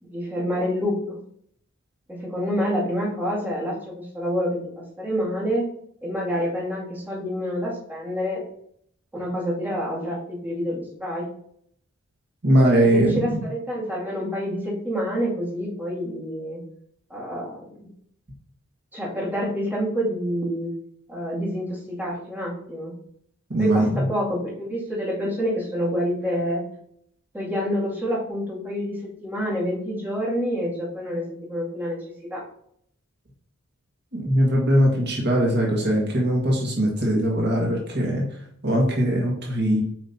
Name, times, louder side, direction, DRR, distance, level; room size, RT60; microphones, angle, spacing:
voice 1, 0.0-1.2 2.1-5.7 6.0-8.4 9.1-11.3 12.8-16.6 17.1-17.7 18.9-20.7 21.1-22.9 23.6-26.7 27.3-32.4, equal, 10° right, -6 dB, 2.4 m, -27 dB
voice 2, 12.4-13.4 23.5-24.1 34.1-38.2 38.6-39.8, right 1 dB, 55° right, -2 dB, 1.7 m, -21 dB
7.6 x 5.1 x 2.8 m, 0.66 s
head